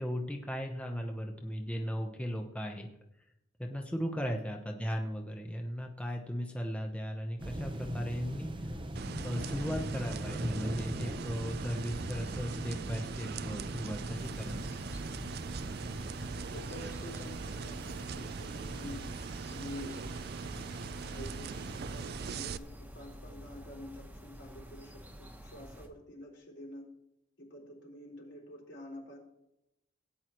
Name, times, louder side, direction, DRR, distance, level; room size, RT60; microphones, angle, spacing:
voice 1, 0.0-2.9 3.6-8.7 9.2-14.7, equal, 5° left, 2 dB, 0.9 m, -37 dB
sound 1, 7.4-22.3, equal, 30° right, 0.9 m, -41 dB
sound 2, 9.0-22.6, right 6 dB, 60° right, 0.4 m, -41 dB
sound 3, 14.2-25.9, equal, 10° right, 1.3 m, -49 dB
voice 2, 16.5-20.1 21.1-26.9 27.4-29.2, left 1 dB, 80° left, -3 dB, 4.3 m, -48 dB
17.0 x 9.5 x 3.1 m, 0.84 s
head